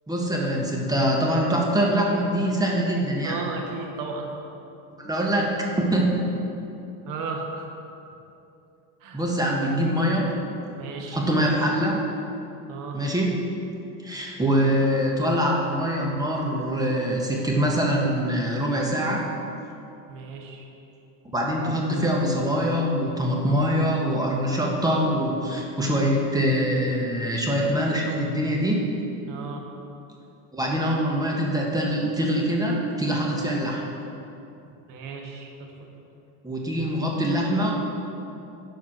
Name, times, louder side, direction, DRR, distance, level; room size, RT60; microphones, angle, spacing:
voice 1, 0.1-3.4 5.0-6.1 9.1-10.3 11.1-12.0 12.9-13.5 14.0-19.2 21.3-28.8 30.5-33.8 36.4-37.7, equal, 10° right, -2 dB, 1.4 m, -24 dB
voice 2, 3.2-4.3 7.0-7.7 9.0-9.2 10.8-11.2 12.7-13.0 20.1-20.6 29.3-29.6 34.9-35.5 35.8-35.9, right 4 dB, 50° right, 1 dB, 1.6 m, -34 dB
11.0 x 4.8 x 6.0 m, 2.8 s
supercardioid pair, 120°, 42 cm